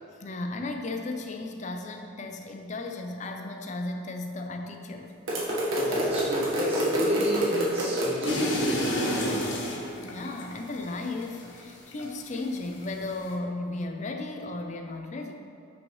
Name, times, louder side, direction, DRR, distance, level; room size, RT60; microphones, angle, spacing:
voice 1, 0.2-5.1 10.0-15.3, left 2 dB, 35° left, 4 dB, 0.5 m, -35 dB
sound 1, 5.3-8.3, right 1 dB, 75° right, 1.4 m, -27 dB
voice 2, 5.7-9.5, left 1 dB, 30° right, -7 dB, 1.2 m, -32 dB
sound 2, 8.2-12.4 12.7-13.3, equal, 60° left, 0.8 m, -31 dB
8.1 x 5.5 x 3.2 m, 2.5 s
head